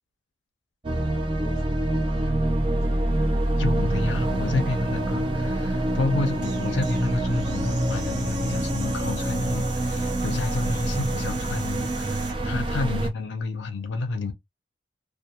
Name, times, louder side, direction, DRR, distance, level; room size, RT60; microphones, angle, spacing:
sound 1, 0.8-13.1, right 1 dB, 25° right, 0.4 m, -26 dB
voice 1, 1.1-3.2 6.0-6.2 10.5-11.0 12.7-12.9, left 1 dB, 25° left, 0.9 m, -46 dB
voice 2, 3.6-14.3, left 3 dB, 80° left, 0.5 m, -30 dB
sound 2, 6.2-12.4, right 5 dB, 80° right, 1.1 m, -42 dB
2.3 x 2.2 x 2.7 m
head